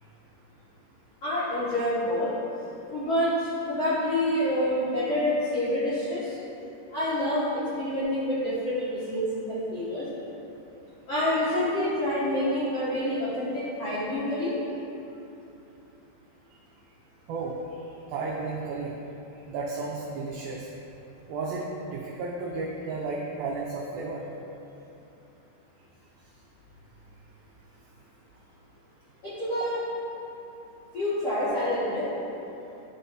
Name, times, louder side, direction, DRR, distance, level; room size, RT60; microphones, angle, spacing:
voice 1, 1.2-2.3 2.9-6.4 6.9-7.5 7.7-10.1 11.1-14.6 29.2-29.8 30.9-32.1, left 1 dB, 75° left, -12 dB, 1.4 m, -27 dB
voice 2, 17.3-18.9 19.5-20.7 21.3-24.3, right 3 dB, 85° right, -3 dB, 2.1 m, -33 dB
12.0 x 4.1 x 2.6 m, 2.9 s
omnidirectional pair, 4.9 m